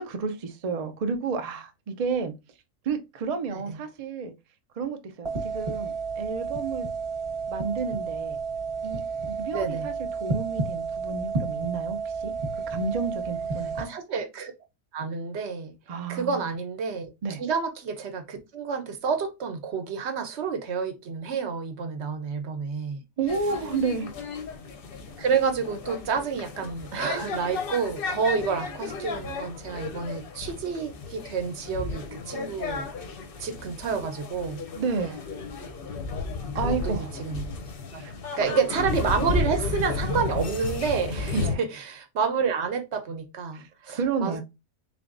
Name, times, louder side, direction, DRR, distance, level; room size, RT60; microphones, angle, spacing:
voice 1, 0.0-2.3 2.8-4.3 4.8-6.9 7.5-8.4 8.8-9.0 9.4-12.3 12.7-13.9 15.9-16.5 17.2-17.4 23.2-24.1 34.8-35.2 36.5-37.1 38.0-38.1 41.3-41.6 43.5-43.6 43.9-44.4, right 5 dB, 80° right, 0.3 m, -31 dB
sound 1, 5.3-13.8, right 4 dB, 25° right, 0.8 m, -31 dB
voice 2, 9.5-9.9 13.8-14.5 14.9-15.7 16.1-17.1 17.4-23.0 25.2-32.9 33.4-34.6 36.6-37.5 37.9-38.0 38.4-44.4, right 5 dB, 60° right, 0.9 m, -29 dB
sound 2, 23.3-41.5, left 4 dB, 55° left, 0.7 m, -33 dB
3.7 x 3.3 x 2.5 m
omnidirectional pair, 1.5 m